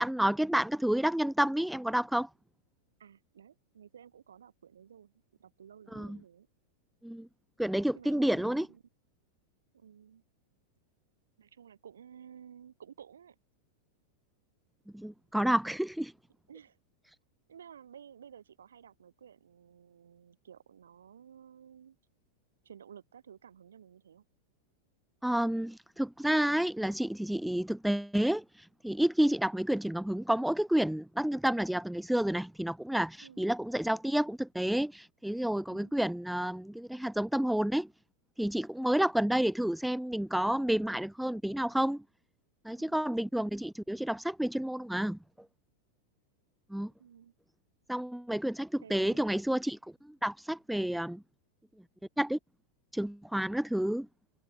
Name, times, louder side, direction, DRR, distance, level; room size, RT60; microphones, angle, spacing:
voice 1, 0.0-2.3 5.9-6.2 7.0-7.3 7.6-8.7 14.9-16.1 25.2-28.4 28.8-37.9 38.4-42.0 42.6-45.2 46.7-46.9 47.9-49.8 50.2-51.2 52.2-52.4 52.9-54.1, right 1 dB, ahead, 0.6 m, -30 dB
voice 2, 3.0-5.1 5.4-6.5 7.9-8.8 9.7-10.2 11.4-13.4 16.5-16.8 17.5-22.0 22.6-24.2 33.2-33.5 35.7-35.9 42.7-43.1 47.0-47.3 48.8-49.2, right 8 dB, 65° right, 6.4 m, -53 dB
figure-of-eight pair, 90°, 0 cm